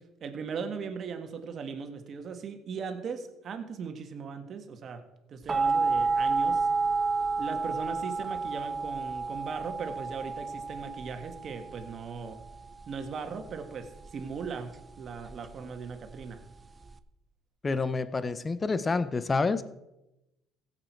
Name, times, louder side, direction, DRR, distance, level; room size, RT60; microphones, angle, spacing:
voice 1, 0.2-5.0 5.3-6.7 7.4-12.4 12.9-16.4, right 5 dB, 45° right, 6 dB, 1.6 m, -38 dB
sound 1, 5.5-17.0, right 4 dB, 25° right, 0.6 m, -31 dB
voice 2, 17.6-19.7, left 4 dB, 25° left, 14 dB, 0.6 m, -28 dB
16.0 x 7.9 x 4.6 m, 0.93 s
cardioid pair, 105°, 0 cm